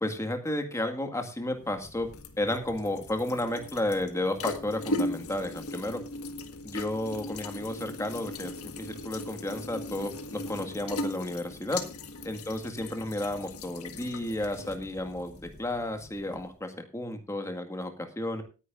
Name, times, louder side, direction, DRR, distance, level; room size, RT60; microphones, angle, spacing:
voice 1, 0.0-2.1 2.4-6.0 6.6-11.8 12.2-18.4, left 1 dB, 15° left, 5 dB, 1.9 m, -32 dB
sound 1, 1.5-16.5, left 2 dB, 80° left, 1.7 m, -39 dB
18.5 x 10.0 x 2.6 m, 0.32 s
head